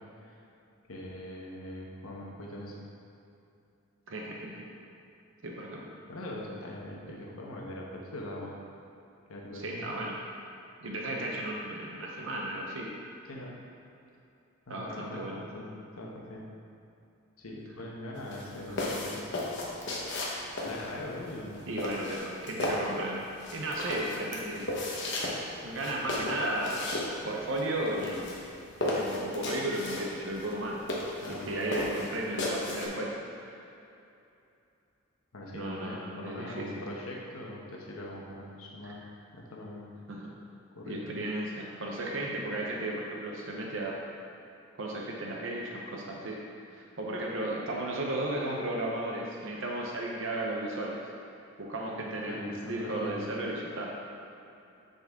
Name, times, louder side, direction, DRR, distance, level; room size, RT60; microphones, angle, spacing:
voice 1, 0.9-2.8 6.1-8.6 9.3-10.0 13.3-13.5 14.7-16.4 17.4-19.3 20.6-21.7 31.2-31.8 35.3-39.0 39.3-39.9 40.8-41.2 52.3-53.1, left 1 dB, 85° left, -2 dB, 1.1 m, -42 dB
voice 2, 4.1-4.7 5.4-5.9 9.5-10.1 10.8-12.9 14.7-15.5 18.5-19.0 21.7-24.7 25.6-26.8 27.2-28.4 29.0-30.8 31.3-33.6 35.5-36.7 38.8-39.0 40.1-40.3 40.9-44.0 44.8-46.4 46.7-51.0 51.6-53.9, right 1 dB, 65° right, -2 dB, 0.8 m, -34 dB
sound 1, 18.2-32.9, left 2 dB, 55° left, 1.0 m, -35 dB
9.2 x 4.0 x 3.6 m, 2.7 s
head